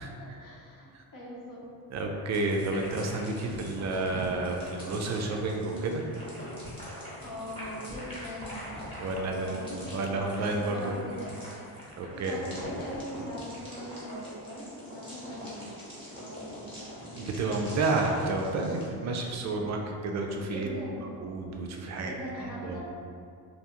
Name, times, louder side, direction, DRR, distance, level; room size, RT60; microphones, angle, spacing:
voice 1, 0.0-1.6 7.2-8.7 9.4-10.0 10.3-11.4 12.0-15.7 16.0-17.0 20.4-21.1 22.0-22.8, equal, 45° left, -5 dB, 0.8 m, -41 dB
voice 2, 1.9-6.0 9.0-10.9 12.0-12.4 17.2-20.7 21.2-22.2 22.6-22.8, right 2 dB, 40° right, 1 dB, 0.4 m, -30 dB
sound 1, 2.3-18.9, equal, 10° left, 1.0 m, -43 dB
2.5 x 2.2 x 2.8 m, 2.3 s
cardioid pair, 95°, 45 cm